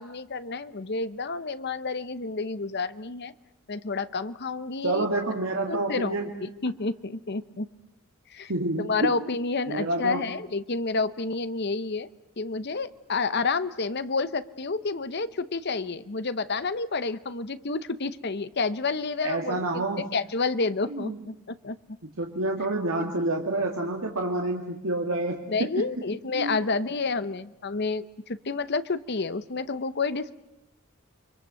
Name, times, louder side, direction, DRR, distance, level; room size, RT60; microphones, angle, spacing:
voice 1, 0.0-3.3 3.7-5.1 5.7-6.3 6.6-7.7 8.3-8.5 8.8-12.1 12.4-19.8 20.1-21.3 21.6-21.8 25.5-30.3, left 4 dB, 50° left, 14 dB, 0.9 m, -29 dB
voice 2, 4.8-6.4 8.5-9.1 9.7-10.2 19.2-20.0 20.9-21.2 22.2-25.9 26.3-26.6, right 2 dB, 70° right, 1 dB, 2.1 m, -28 dB
30.0 x 23.5 x 7.7 m, 0.91 s
head